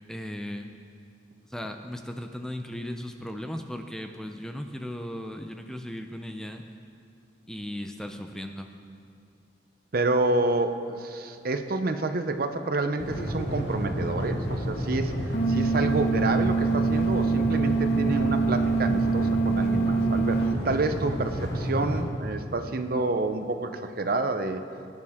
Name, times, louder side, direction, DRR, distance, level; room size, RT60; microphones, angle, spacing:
voice 1, 0.1-0.7 1.5-6.6 7.5-8.7, left 1 dB, 5° left, 5 dB, 0.5 m, -36 dB
voice 2, 9.9-24.6, right 2 dB, 55° right, 8 dB, 0.6 m, -28 dB
sound 1, 13.0-22.0, equal, 65° left, 1.9 m, -30 dB
sound 2, 15.3-20.5, right 4 dB, 40° left, 0.6 m, -25 dB
19.0 x 9.7 x 3.6 m, 2.4 s
head